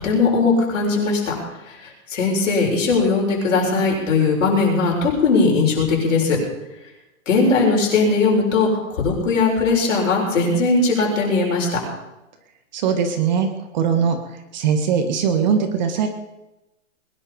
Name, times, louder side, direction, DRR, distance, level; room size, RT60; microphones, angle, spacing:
voice 1, 0.0-1.3 2.1-6.4 7.3-8.7 9.0-11.7, left 4 dB, 60° left, -1 dB, 7.2 m, -19 dB
voice 2, 12.7-13.5 13.7-14.2 14.5-16.1, right 7 dB, 35° right, 6 dB, 1.6 m, -20 dB
21.5 x 11.0 x 5.3 m, 0.98 s
hypercardioid pair, 170°, 41 cm